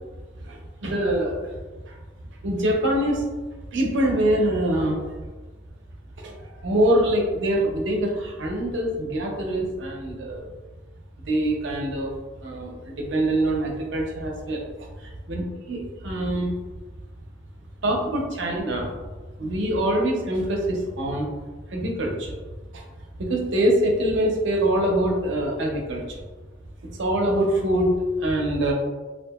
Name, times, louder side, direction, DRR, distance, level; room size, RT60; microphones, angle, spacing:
voice 1, 0.4-1.4 1.9-2.0 2.4-3.2 3.7-5.0 6.2-10.5 11.3-12.1 12.4-16.5 17.8-18.9 19.4-21.3 21.7-22.4 22.7-22.8 23.2-26.2 27.0-28.7, right 1 dB, 75° right, 0 dB, 0.6 m, -24 dB
2.7 x 2.4 x 2.3 m, 1.3 s
head